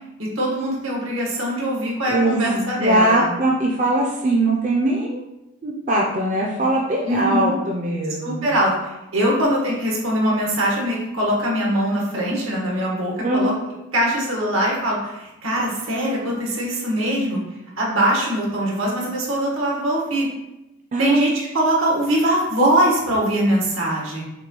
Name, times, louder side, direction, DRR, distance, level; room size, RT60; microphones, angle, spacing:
voice 1, 0.2-3.3 7.0-7.6 8.2-13.5 13.9-17.4 17.8-20.3 21.0-21.3 21.5-24.2, right 1 dB, 80° right, -3 dB, 1.2 m, -22 dB
voice 2, 2.1-5.2 5.6-8.5 9.3-9.5 13.2-13.5 20.9-21.2, right 1 dB, 35° right, -3 dB, 0.5 m, -21 dB
5.9 x 2.2 x 3.0 m, 0.96 s
head